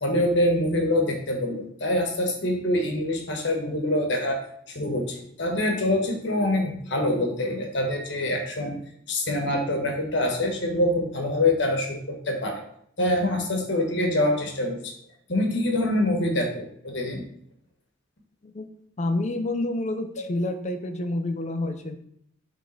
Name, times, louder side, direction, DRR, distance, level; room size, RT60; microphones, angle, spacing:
voice 1, 0.0-8.8 9.1-12.6 13.0-14.9 15.3-17.2 20.2-20.3, left 1 dB, 60° left, 2 dB, 1.3 m, -25 dB
voice 2, 19.0-22.0, left 2 dB, 35° left, 7 dB, 0.6 m, -28 dB
7.2 x 3.6 x 3.9 m, 0.69 s
head